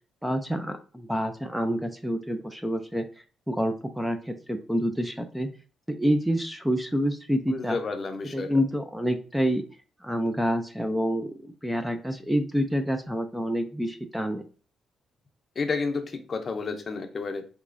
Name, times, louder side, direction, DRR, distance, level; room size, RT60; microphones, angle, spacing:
voice 1, 0.2-3.0 3.5-5.5 5.9-7.8 8.3-9.6 10.0-14.4, equal, 5° right, 7 dB, 0.4 m, -27 dB
voice 2, 7.5-8.5 15.6-17.5, left 4 dB, 40° left, 7 dB, 0.6 m, -31 dB
3.5 x 3.0 x 2.5 m, 0.37 s
cardioid pair, 90°, 0 cm